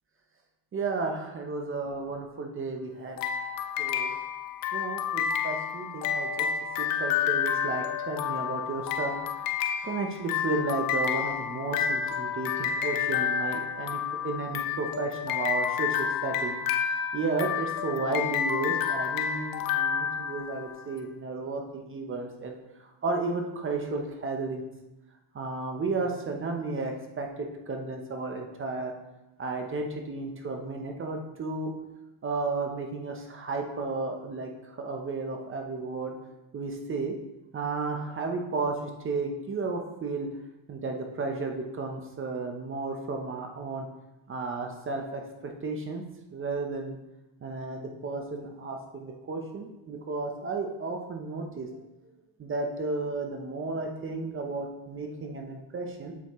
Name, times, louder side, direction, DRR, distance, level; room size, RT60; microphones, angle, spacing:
voice 1, 0.7-3.2 3.8-4.2 4.7-6.5 6.8-9.5 9.8-16.6 17.1-22.5 22.8-24.6 25.3-28.9 29.4-31.7 32.2-36.1 36.5-37.1 37.5-38.8 39.0-40.3 40.7-43.9 44.3-46.0 46.3-47.0 47.4-51.7 52.4-56.1, right 3 dB, 25° right, 3 dB, 0.8 m, -33 dB
sound 1, 3.2-20.8, left 8 dB, 45° left, 0.6 m, -30 dB
8.2 x 6.9 x 3.1 m, 0.97 s
cardioid pair, 155°, 48 cm